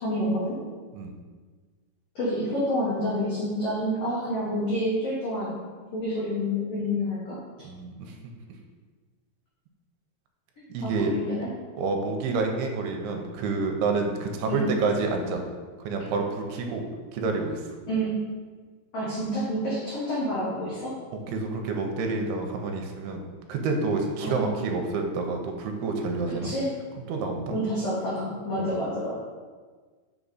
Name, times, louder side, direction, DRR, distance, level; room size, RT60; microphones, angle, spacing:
voice 1, 0.0-0.5 2.1-5.5 5.9-7.4 10.8-11.5 14.4-14.6 17.9-18.1 18.9-20.9 24.2-24.4 26.3-26.7 27.5-29.1, equal, 65° left, -9 dB, 1.5 m, -28 dB
voice 2, 7.6-8.1 10.7-11.2 11.8-15.4 15.8-16.8 17.1-17.6 21.3-26.5 27.1-27.6 28.6-28.7, right 3 dB, 80° right, 3 dB, 2.5 m, -28 dB
6.1 x 4.7 x 4.0 m, 1.5 s
omnidirectional pair, 4.8 m